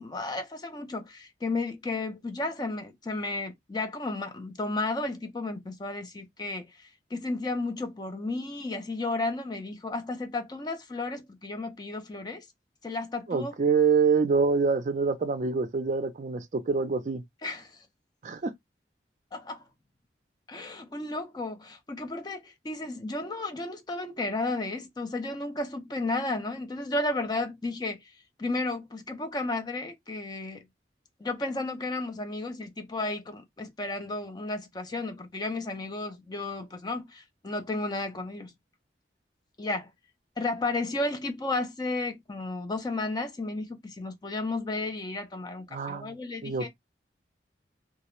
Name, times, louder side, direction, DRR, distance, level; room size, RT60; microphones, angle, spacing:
voice 1, 0.0-12.5 12.8-13.5 17.4-17.9 19.3-19.6 20.5-28.1 28.4-30.7 31.2-38.5 39.6-39.9 40.4-46.7, left 2 dB, 25° left, 0.4 m, -33 dB
voice 2, 13.3-17.2 18.2-18.5 45.7-46.1 46.4-46.7, right 5 dB, 40° right, 0.4 m, -26 dB
2.2 x 2.0 x 3.0 m
head